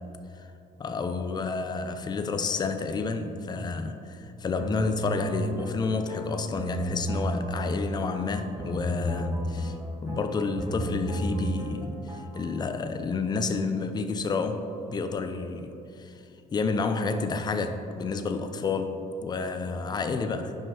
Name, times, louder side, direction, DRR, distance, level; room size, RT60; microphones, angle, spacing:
voice 1, 0.8-9.8 10.0-14.6 14.9-16.2 16.5-20.6, left 4 dB, 25° left, 8 dB, 0.5 m, -30 dB
sound 1, 4.6-12.5, right 1 dB, 15° right, 0.9 m, -33 dB
5.4 x 5.2 x 4.7 m, 2.7 s
cardioid pair, 110°, 17 cm